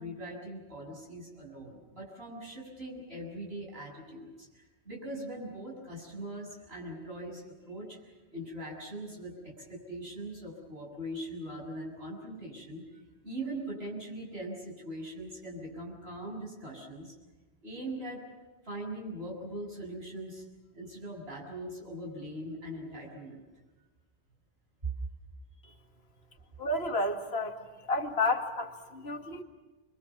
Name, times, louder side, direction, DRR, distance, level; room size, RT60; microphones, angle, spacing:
voice 1, 0.0-17.1 17.6-18.2 18.6-20.4 20.7-23.4 24.8-24.9, right 1 dB, 65° right, -2 dB, 7.8 m, -41 dB
voice 2, 26.6-27.5 27.9-29.4, left 2 dB, 65° left, 2 dB, 2.3 m, -31 dB
29.0 x 23.5 x 7.2 m, 1.2 s
omnidirectional pair, 1.1 m